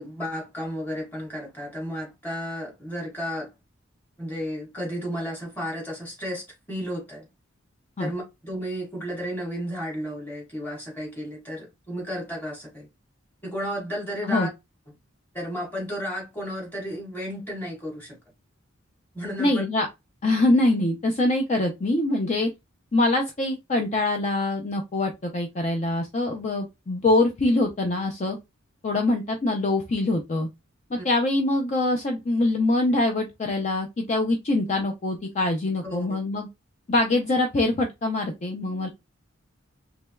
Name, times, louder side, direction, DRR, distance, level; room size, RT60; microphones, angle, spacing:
voice 1, 0.0-3.5 4.2-7.3 8.0-12.9 13.4-14.5 15.3-18.2 19.1-19.6 31.0-31.1 35.8-36.2, equal, 10° left, 1.3 m, -33 dB
voice 2, 19.4-19.9 20.2-22.5 22.9-28.4 28.8-30.5 30.9-36.5 36.9-38.9, left 2 dB, 35° left, 0.4 m, -24 dB
3.3 x 3.0 x 2.2 m
head